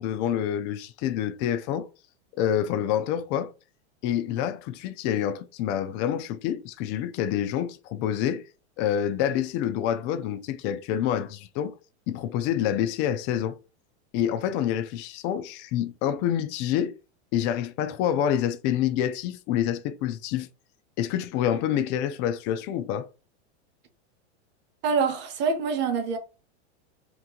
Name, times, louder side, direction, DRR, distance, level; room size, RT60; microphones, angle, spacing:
voice 1, 0.0-1.9 2.4-3.5 4.0-8.4 8.8-11.7 12.1-13.6 14.1-16.9 17.3-20.5 21.0-23.1, left 10 dB, 35° left, 0.4 m, -27 dB
voice 2, 24.8-26.2, right 5 dB, 30° right, 0.9 m, -25 dB
2.9 x 2.6 x 3.6 m
supercardioid pair, 135°, 34 cm